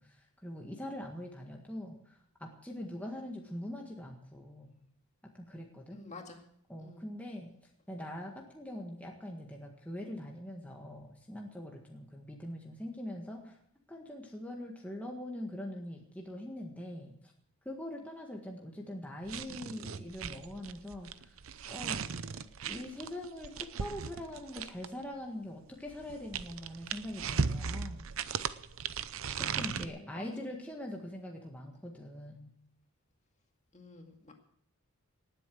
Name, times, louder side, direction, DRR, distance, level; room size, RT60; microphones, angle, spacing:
voice 1, 0.0-4.7 5.3-6.0 6.7-7.5 7.9-13.6 13.9-17.3 17.7-21.4 21.7-22.1 22.6-28.1 29.4-32.5, left 1 dB, 5° left, 0 dB, 1.8 m, -43 dB
voice 2, 5.9-6.4 6.8-7.0 29.3-30.6 33.7-34.3, left 3 dB, 30° left, 4 dB, 2.1 m, -50 dB
sound 1, 19.2-25.0 25.9-29.9, right 6 dB, 70° right, 0.7 m, -37 dB
19.0 x 8.2 x 7.7 m, 0.68 s
head